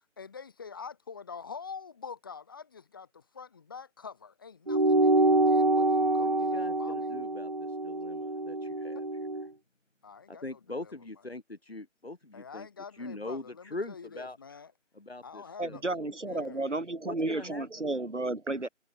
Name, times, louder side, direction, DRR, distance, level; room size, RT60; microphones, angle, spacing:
voice 1, 0.2-7.2 10.0-10.9 12.3-14.7 15.2-15.8 16.2-16.7, left 5 dB, 15° left, 6.0 m, -46 dB
sound 1, 4.7-9.5, right 2 dB, 35° right, 1.4 m, -26 dB
voice 2, 6.1-9.3 10.3-12.7 12.9-14.4 14.9-16.1 17.0-18.0, left 2 dB, 50° left, 7.3 m, -42 dB
voice 3, 15.6-18.7, right 2 dB, 65° right, 3.6 m, -32 dB
figure-of-eight pair, 170°, 38 cm